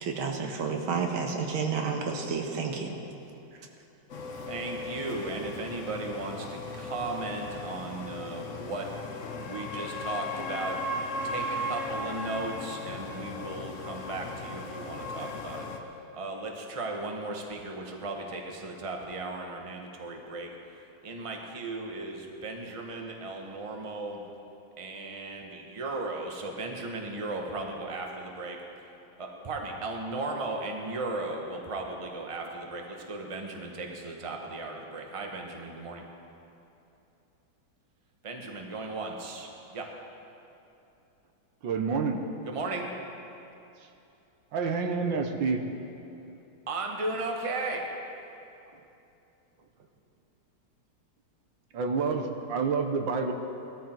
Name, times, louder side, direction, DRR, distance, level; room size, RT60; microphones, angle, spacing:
voice 1, 0.0-3.0, right 5 dB, 90° right, 2 dB, 2.1 m, -30 dB
sound 1, 4.1-15.8, left 2 dB, 50° left, 1.1 m, -37 dB
voice 2, 4.3-8.9 9.4-10.8 11.2-15.7 16.1-20.5 21.0-24.2 24.8-28.6 29.2-36.0 38.2-39.9 42.4-42.9 46.7-47.9, right 2 dB, 20° right, 1 dB, 1.1 m, -36 dB
voice 3, 41.6-42.2 43.8-43.9 44.5-45.7 51.7-53.3, right 5 dB, 70° right, 5 dB, 1.7 m, -28 dB
19.0 x 13.0 x 4.5 m, 2.8 s
omnidirectional pair, 2.2 m